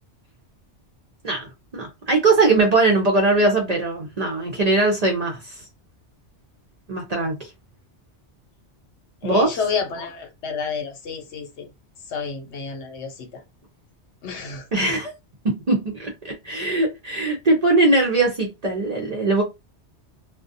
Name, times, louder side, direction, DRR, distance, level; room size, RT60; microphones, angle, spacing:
voice 1, 1.2-5.6 6.9-7.4 9.2-9.6 14.7-15.1 15.7-19.4, right 2 dB, 50° right, 0.5 m, -20 dB
voice 2, 9.2-11.7 12.1-13.4 14.2-14.6, left 5 dB, 75° left, 1.0 m, -29 dB
2.3 x 2.2 x 2.6 m
omnidirectional pair, 1.2 m